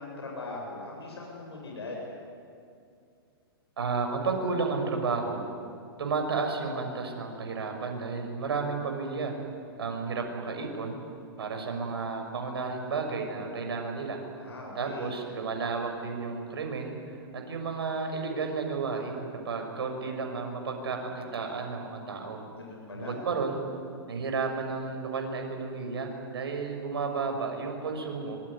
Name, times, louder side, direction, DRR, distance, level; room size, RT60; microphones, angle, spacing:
voice 1, 0.0-2.1 14.4-15.1 22.5-23.1, left 2 dB, 85° left, -2 dB, 7.9 m, -40 dB
voice 2, 3.8-5.4 6.0-9.3 9.8-11.0 11.4-14.2 14.7-16.9 17.3-22.4 22.9-23.6 24.1-28.4, right 4 dB, 75° right, 3 dB, 6.3 m, -32 dB
25.0 x 22.0 x 9.9 m, 2.4 s
hypercardioid pair, 120°, 13 cm